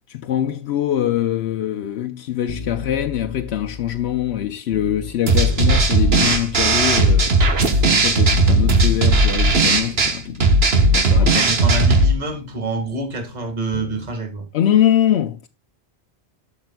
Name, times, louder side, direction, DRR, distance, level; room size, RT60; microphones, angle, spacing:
voice 1, 0.1-7.4 7.9-10.4 10.9-11.5 14.5-15.5, left 11 dB, 90° left, 0.9 m, -23 dB
sound 1, 2.5-5.2 5.5-7.5 7.8-11.2 11.5-14.1 14.4-14.5, left 3 dB, 45° left, 1.0 m, -35 dB
sound 2, 5.3-12.1, right 2 dB, 75° right, 1.5 m, -16 dB
voice 2, 11.2-14.5, right 2 dB, 40° right, 1.9 m, -27 dB
12.0 x 6.7 x 2.2 m
omnidirectional pair, 1.1 m